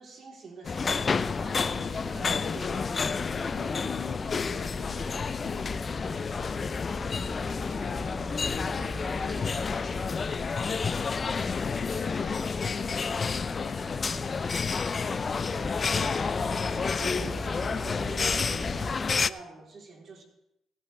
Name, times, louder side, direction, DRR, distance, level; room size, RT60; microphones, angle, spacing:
voice 1, 0.0-3.8 7.8-8.4 13.9-14.3 15.4-20.2, right 4 dB, 55° right, 3.4 m, -47 dB
sound 1, 0.6-19.3, left 5 dB, 40° left, 0.4 m, -30 dB
sound 2, 0.7-18.9, right 1 dB, 15° right, 1.3 m, -42 dB
voice 2, 1.7-11.0 11.2-14.6, left 10 dB, 80° left, 0.8 m, -47 dB
16.5 x 12.0 x 3.3 m
cardioid pair, 90°, 0 cm